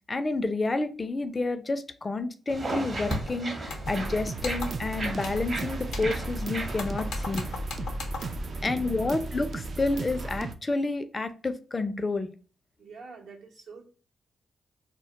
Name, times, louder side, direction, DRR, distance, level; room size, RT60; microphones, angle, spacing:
voice 1, 0.1-7.5 8.6-12.3, left 3 dB, 30° left, 10 dB, 0.4 m, -29 dB
sound 1, 2.5-7.6, right 2 dB, 40° right, 0.8 m, -36 dB
sound 2, 3.1-3.3 3.7-4.1 4.4-4.9 5.2-5.5 5.9-6.4 6.7-8.4, left 3 dB, 90° left, 0.6 m, -37 dB
sound 3, 3.9-10.5, right 3 dB, 55° right, 0.3 m, -35 dB
voice 2, 8.5-9.1 12.8-13.9, right 4 dB, 80° right, 0 dB, 0.7 m, -47 dB
2.2 x 2.1 x 3.8 m, 0.37 s
supercardioid pair, 60°, 0 cm